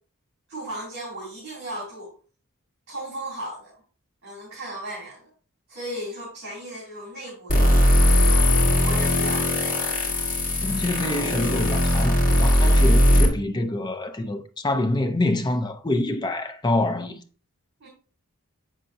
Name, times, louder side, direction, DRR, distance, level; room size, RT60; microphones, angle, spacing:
voice 1, 0.5-2.1 2.9-3.7 4.2-5.3 5.7-9.5 17.8-17.9, right 1 dB, 50° right, 2.7 m, -36 dB
sound 1, 7.5-13.3, left 1 dB, 40° left, 1.5 m, -19 dB
voice 2, 10.6-17.2, left 2 dB, 20° left, 0.5 m, -26 dB
7.3 x 5.7 x 2.6 m
head